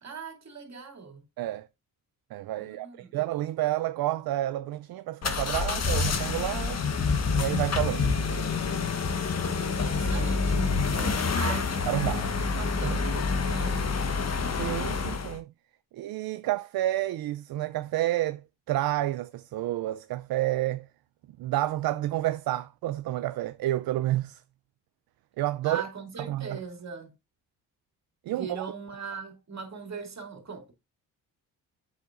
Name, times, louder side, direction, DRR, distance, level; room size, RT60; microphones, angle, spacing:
voice 1, 0.0-1.2 2.6-3.1 9.4-10.8 11.3-13.9 25.6-27.1 28.3-30.7, right 5 dB, 45° right, 2.7 m, -40 dB
voice 2, 2.3-6.8 7.3-8.1 10.9-11.5 11.9-12.3 12.8-13.0 14.6-15.5 15.9-18.4 18.7-20.9 21.4-24.4 25.4-25.8 26.3-26.6 28.3-28.7, right 15 dB, 70° right, 0.5 m, -30 dB
sound 1, 5.2-15.4, left 4 dB, 45° left, 1.3 m, -27 dB
7.9 x 7.3 x 2.5 m
cardioid pair, 80°, 37 cm